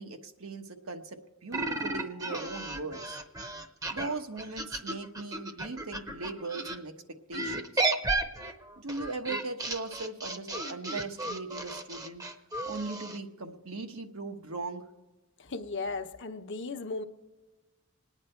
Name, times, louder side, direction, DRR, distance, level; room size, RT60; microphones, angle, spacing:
voice 1, 0.0-3.2 3.9-7.9 8.8-12.2 12.6-14.8, right 3 dB, 85° right, 5 dB, 1.2 m, -39 dB
sound 1, 1.5-6.8 7.3-13.2, right 2 dB, 15° right, 0.7 m, -34 dB
voice 2, 15.4-17.0, left 3 dB, 55° left, 8 dB, 0.8 m, -36 dB
26.5 x 9.8 x 4.4 m, 1.2 s
head